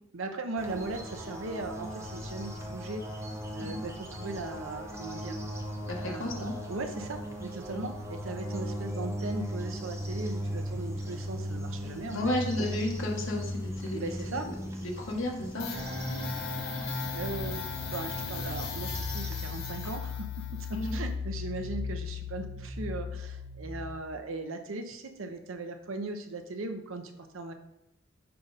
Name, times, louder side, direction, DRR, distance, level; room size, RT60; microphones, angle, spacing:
voice 1, 0.1-3.1 3.5-5.3 6.0-12.3 13.9-14.5 17.1-20.1 20.6-20.7 20.9-27.5, right 3 dB, 75° right, 6 dB, 0.8 m, -38 dB
sound 1, 0.6-19.9, equal, 15° right, 0.7 m, -38 dB
voice 2, 5.9-6.5 7.7-7.9 11.8-15.7 20.7-21.0, left 1 dB, 65° left, 0 dB, 1.4 m, -34 dB
sound 2, 15.6-24.0, left 4 dB, 90° left, 1.6 m, -36 dB
5.7 x 5.1 x 4.1 m, 0.86 s
head